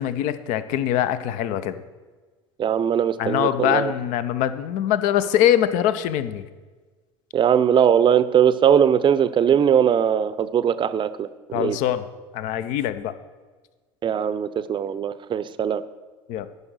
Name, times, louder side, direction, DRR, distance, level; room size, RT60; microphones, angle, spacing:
voice 1, 0.0-1.8 3.2-6.5 11.5-12.1 12.3-13.1 16.3-16.5, left 11 dB, 60° left, 12 dB, 0.7 m, -23 dB
voice 2, 2.6-3.9 7.3-11.3 11.5-11.8 14.0-15.8, right 8 dB, 35° right, 13 dB, 0.6 m, -20 dB
9.8 x 5.5 x 6.3 m, 1.4 s
hypercardioid pair, 80°, 15 cm